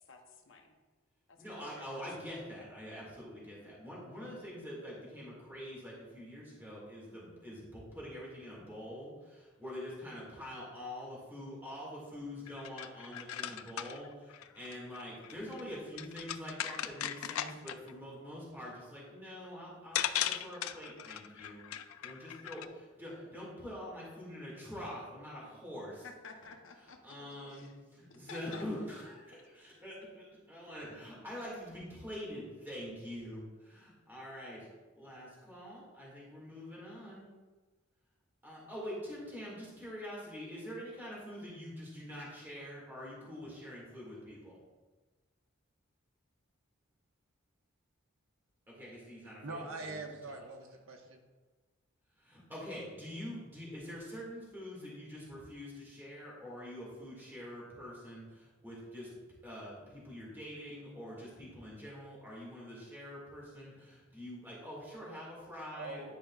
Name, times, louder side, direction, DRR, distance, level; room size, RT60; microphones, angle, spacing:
voice 1, 0.1-0.7 1.3-2.0 26.0-27.2 27.5-27.8 28.1-28.6 29.3-29.4, left 4 dB, 65° left, 4 dB, 0.8 m, -52 dB
voice 2, 1.4-21.6 22.0-26.0 27.0-34.7 34.9-37.3 38.4-44.6 48.7-49.9 52.2-59.1 59.4-66.1, equal, 10° right, -6 dB, 2.0 m, -45 dB
sound 1, 12.5-17.9 19.4-19.5 20.0-22.7, left 11 dB, 80° left, 0.4 m, -38 dB
voice 3, 49.4-51.2 65.8-66.1, right 2 dB, 75° right, 3 dB, 1.0 m, -43 dB
10.5 x 5.1 x 2.4 m, 1.3 s
head